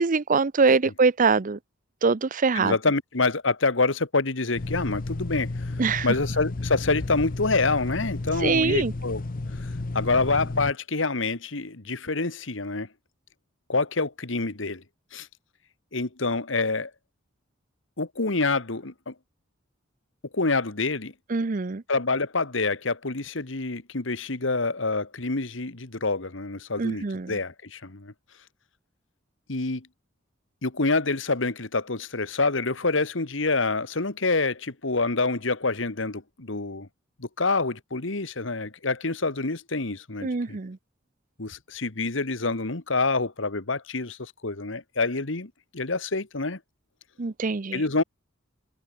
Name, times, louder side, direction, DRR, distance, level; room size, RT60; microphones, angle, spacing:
voice 1, 0.0-1.6 2.0-2.7 5.8-6.1 8.4-8.9 21.3-21.8 26.8-27.4 40.2-40.8 47.2-47.8, right 4 dB, 45° right, 0.6 m, -23 dB
voice 2, 2.5-9.2 9.6-12.9 13.7-14.8 15.1-15.3 15.9-16.9 18.0-19.1 20.3-21.1 21.9-28.1 29.5-29.9 30.6-36.9 37.2-40.6 41.4-46.6 47.7-48.0, left 3 dB, 70° left, 1.7 m, -27 dB
sound 1, 4.6-10.7, left 2 dB, 45° left, 0.7 m, -32 dB
head